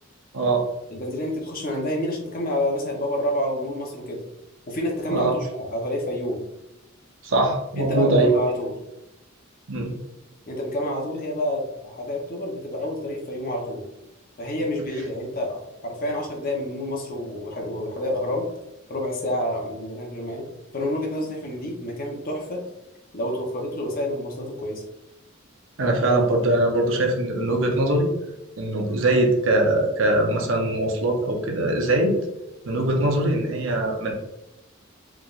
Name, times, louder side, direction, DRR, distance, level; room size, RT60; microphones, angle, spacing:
voice 1, 0.3-0.7 5.1-5.4 7.2-8.3 9.7-9.9 25.8-28.1 28.6-32.1 32.6-34.1, right 1 dB, 70° right, 1 dB, 0.8 m, -22 dB
voice 2, 0.9-4.2 4.7-6.4 7.8-8.7 10.5-13.8 14.4-18.5 18.9-20.4 20.7-22.6 23.1-24.8, left 1 dB, 45° left, 0 dB, 0.9 m, -28 dB
4.5 x 3.4 x 2.5 m, 0.89 s
head